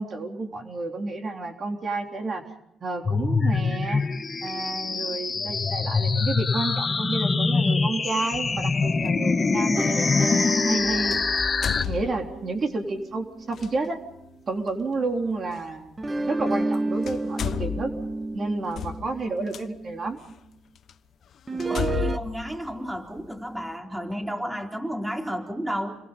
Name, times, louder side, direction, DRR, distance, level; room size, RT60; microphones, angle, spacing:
voice 1, 0.0-2.4 2.8-4.0 4.4-11.2 11.9-14.0 14.5-17.9 18.3-20.2, right 3 dB, 45° right, 3 dB, 3.8 m, -30 dB
sound 1, 3.0-11.8, left 4 dB, 30° left, 1.7 m, -24 dB
sound 2, 9.0-9.2 11.1-12.6 13.5-13.7 15.6-15.7 16.6-16.7 17.0-19.6 20.3-20.4 20.9-21.0 21.6-23.4, left 9 dB, 60° left, 1.0 m, -32 dB
sound 3, 9.8-14.3 16.0-20.1 21.5-22.2, right 2 dB, 25° right, 1.6 m, -31 dB
voice 2, 21.5-26.0, equal, 10° right, 2 dB, 4.1 m, -32 dB
29.5 x 22.0 x 5.4 m, 0.83 s
cardioid pair, 90°, 0 cm